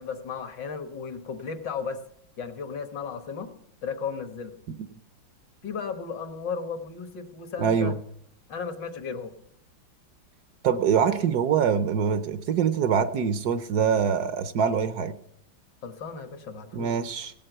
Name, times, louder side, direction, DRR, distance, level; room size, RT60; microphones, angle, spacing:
voice 1, 0.0-2.0 2.4-3.5 3.8-4.6 5.6-7.9 8.5-9.3 15.8-16.9, left 5 dB, 70° left, 8 dB, 1.9 m, -35 dB
voice 2, 7.6-7.9 10.6-15.1 16.7-17.3, right 7 dB, 65° right, 12 dB, 1.1 m, -24 dB
16.5 x 7.7 x 7.9 m, 0.72 s
omnidirectional pair, 2.1 m